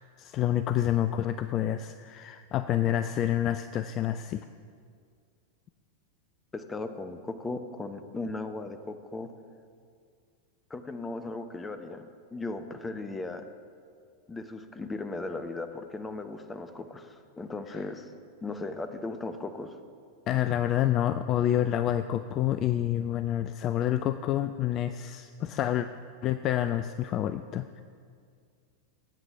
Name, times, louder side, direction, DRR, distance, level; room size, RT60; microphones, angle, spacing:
voice 1, 0.2-4.5 17.7-17.8 20.3-25.9 26.2-27.8, left 11 dB, 35° left, 11 dB, 0.4 m, -28 dB
voice 2, 6.5-9.3 10.7-13.4 14.3-18.1 18.4-19.8, left 3 dB, 15° left, 9 dB, 0.8 m, -37 dB
19.0 x 9.0 x 3.5 m, 2.1 s
figure-of-eight pair, 90°, 0 cm